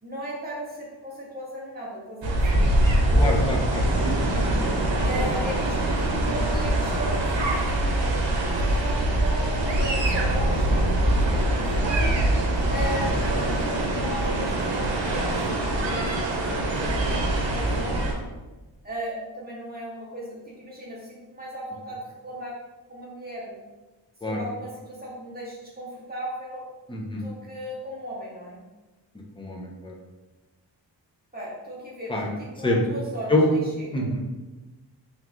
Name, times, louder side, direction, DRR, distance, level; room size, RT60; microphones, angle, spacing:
voice 1, 0.0-3.5 5.0-12.2 12.7-18.1 18.8-22.6 22.9-23.6 24.2-26.7 27.2-28.6 31.3-34.2, equal, 20° right, -5 dB, 1.4 m, -36 dB
sound 1, 2.2-18.1, right 1 dB, 80° right, 0.9 m, -23 dB
voice 2, 3.2-5.1 13.1-13.2 24.2-24.4 26.9-27.2 29.4-29.9 32.1-32.3 32.6-32.8 33.3-33.4 33.9-34.2, left 2 dB, 10° left, -1 dB, 0.7 m, -27 dB
3.8 x 3.5 x 3.0 m, 1.1 s
wide cardioid pair, 105°, 44 cm